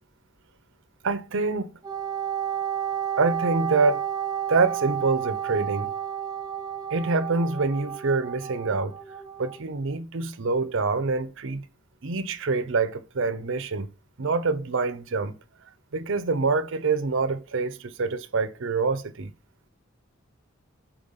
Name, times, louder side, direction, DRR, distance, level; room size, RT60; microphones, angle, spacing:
voice 1, 1.0-1.7 3.2-4.0 4.5-5.9 6.9-9.0 9.4-11.7 12.0-13.9 14.2-15.3 15.9-19.3, right 4 dB, 65° right, 0.7 m, -26 dB
Wind instrument woodwind instrument, 1.8-9.6, right 9 dB, 20° right, 0.6 m, -31 dB
5.1 x 4.4 x 5.6 m
head